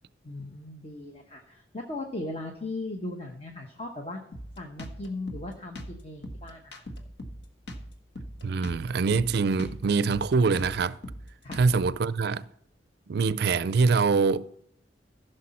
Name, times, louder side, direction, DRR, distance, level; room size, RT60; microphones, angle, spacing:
voice 1, 0.2-4.2 4.6-6.8 11.4-11.6, left 2 dB, 35° left, 1.0 m, -38 dB
Drum kit, 4.3-12.0, equal, 70° left, 1.3 m, -41 dB
voice 2, 8.4-11.0 11.6-12.4 13.1-14.5, right 4 dB, 60° right, 0.4 m, -24 dB
15.5 x 6.7 x 4.2 m
head